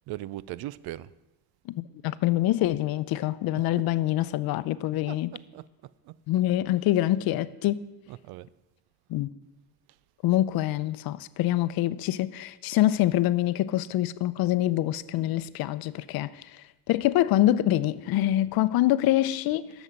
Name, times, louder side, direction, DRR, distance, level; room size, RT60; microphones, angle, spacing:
voice 1, 0.1-1.1 3.5-3.9 5.1-5.7 6.1-6.2 8.1-8.5, right 15 dB, 80° right, 0.5 m, -39 dB
voice 2, 2.0-5.3 6.3-7.8 9.1-9.3 10.2-16.3 16.9-19.7, left 14 dB, 70° left, 0.6 m, -25 dB
12.0 x 7.2 x 7.6 m
cardioid pair, 150°, 37 cm